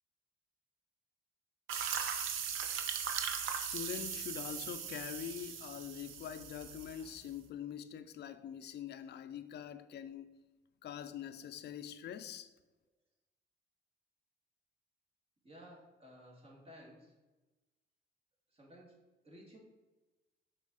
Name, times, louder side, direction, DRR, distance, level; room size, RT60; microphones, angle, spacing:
sound 1, 1.7-7.3, right 7 dB, 85° right, 0.7 m, -39 dB
voice 1, 3.2-10.3 10.8-12.5, left 9 dB, 55° left, 0.5 m, -44 dB
voice 2, 15.4-17.1 18.5-19.6, equal, 30° right, 2.0 m, -56 dB
6.1 x 4.2 x 4.0 m
cardioid pair, 90°, 20 cm